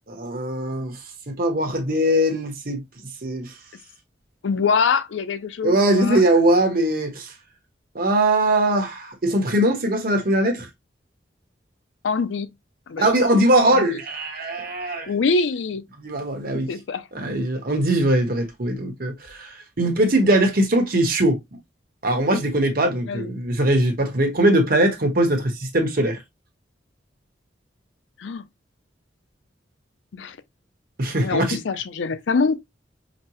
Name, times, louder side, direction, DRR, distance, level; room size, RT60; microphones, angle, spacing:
voice 1, 0.1-1.0 1.3-2.8 3.2-3.5 5.6-7.3 7.9-10.7 13.0-15.1 16.0-16.7 17.1-21.4 22.0-26.2 31.0-31.6, right 1 dB, 55° right, 1.1 m, -21 dB
voice 2, 4.4-6.2 12.0-12.5 12.9-14.0 15.1-15.8 16.5-17.1 23.1-23.3 28.2-28.5 30.1-30.4 31.2-32.6, left 4 dB, 90° left, 0.5 m, -24 dB
5.1 x 2.1 x 3.0 m
head